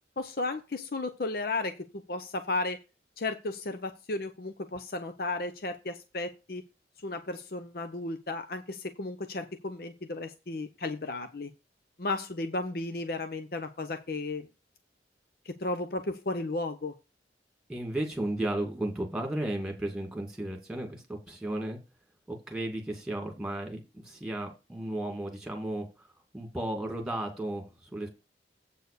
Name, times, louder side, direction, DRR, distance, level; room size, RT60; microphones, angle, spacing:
voice 1, 0.2-2.8 3.2-6.6 7.0-11.5 12.0-14.5 15.4-16.9, left 2 dB, 55° left, 9 dB, 0.7 m, -34 dB
voice 2, 17.7-21.8 22.3-25.9 26.3-28.1, right 1 dB, 5° right, 2 dB, 2.2 m, -34 dB
8.2 x 4.3 x 6.6 m, 0.28 s
head